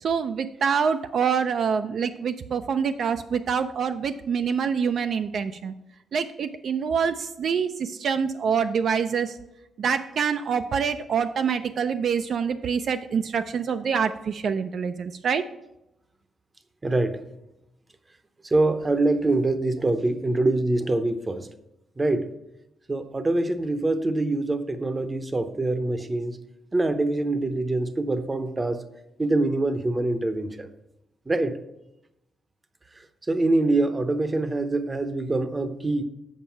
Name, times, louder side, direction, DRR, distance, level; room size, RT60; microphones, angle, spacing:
voice 1, 0.0-5.7 6.1-9.4 9.8-15.5, right 6 dB, 60° right, 8 dB, 0.3 m, -26 dB
voice 2, 16.8-17.2 18.5-21.5 22.0-22.3 22.9-26.4 26.7-28.8 29.2-30.7 31.3-31.6 33.3-36.0, right 2 dB, 25° right, 10 dB, 0.7 m, -24 dB
7.3 x 5.2 x 5.7 m, 0.89 s
cardioid pair, 95°, 0 cm